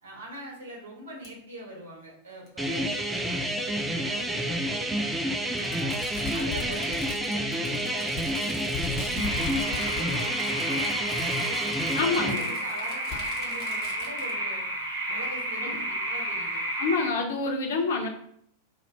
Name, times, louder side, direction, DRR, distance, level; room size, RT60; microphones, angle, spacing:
voice 1, 0.0-5.0 5.6-6.0 6.3-11.6 12.0-14.7 15.1-16.6, right 1 dB, 60° right, -2 dB, 1.2 m, -43 dB
Fireworks, 1.2-1.3 2.5-2.6 3.8-3.9 5.6-14.3, left 4 dB, 35° left, 1.1 m, -39 dB
sound 1, 2.6-12.4, right 1 dB, 5° right, 0.4 m, -29 dB
sound 2, 9.2-17.1, right 1 dB, 80° right, 1.2 m, -31 dB
voice 2, 12.0-12.5 15.6-15.7 16.8-18.1, left 4 dB, 60° left, 3 dB, 0.6 m, -27 dB
2.9 x 2.5 x 4.2 m, 0.68 s
figure-of-eight pair, 90°, 0 cm